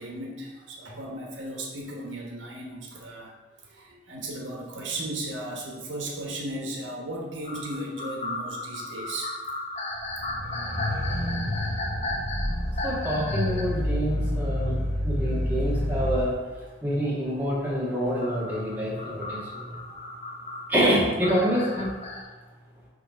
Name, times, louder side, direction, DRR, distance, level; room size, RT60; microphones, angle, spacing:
voice 1, 0.0-3.3 3.7-9.4, right 1 dB, 80° right, -1 dB, 1.2 m, -35 dB
sound 1, 7.4-13.8 14.2-14.3 15.8-15.9 18.2-22.2, left 2 dB, 35° left, 1.0 m, -35 dB
sound 2, 10.1-16.2, left 1 dB, 15° left, 1.0 m, -28 dB
voice 2, 12.8-14.8 15.0-16.3 16.8-19.8 20.7-21.9, equal, 10° right, -7 dB, 1.8 m, -26 dB
6.6 x 3.4 x 5.2 m, 1.3 s
head